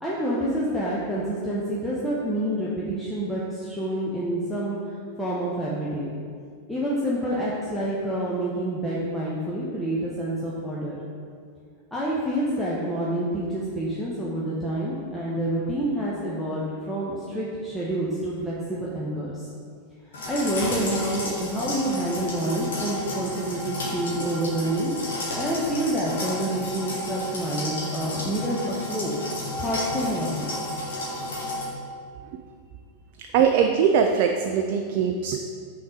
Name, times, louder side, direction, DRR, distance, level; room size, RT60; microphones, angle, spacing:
voice 1, 0.0-4.8 5.2-6.1 6.7-11.0 11.9-19.5 20.3-24.9 25.4-29.1 29.6-30.6, right 1 dB, 5° left, -7 dB, 0.9 m, -28 dB
sound 1, 20.1-31.6, left 1 dB, 60° left, 1.6 m, -32 dB
voice 2, 33.3-35.4, right 7 dB, 45° right, 5 dB, 0.3 m, -21 dB
5.8 x 4.0 x 5.0 m, 2.1 s
figure-of-eight pair, 90°, 0 cm